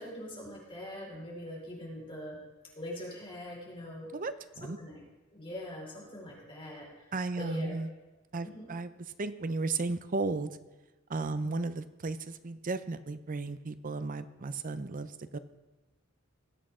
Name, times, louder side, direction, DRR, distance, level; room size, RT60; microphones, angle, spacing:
voice 1, 0.0-2.4 2.7-4.1 4.8-5.0 5.3-7.8 8.4-8.7, equal, 25° left, -4 dB, 4.9 m, -42 dB
voice 2, 4.1-4.8 7.1-7.9 8.3-8.9 9.2-10.5 11.1-15.4, right 3 dB, 40° right, 12 dB, 0.6 m, -34 dB
20.0 x 8.2 x 3.7 m, 1.1 s
head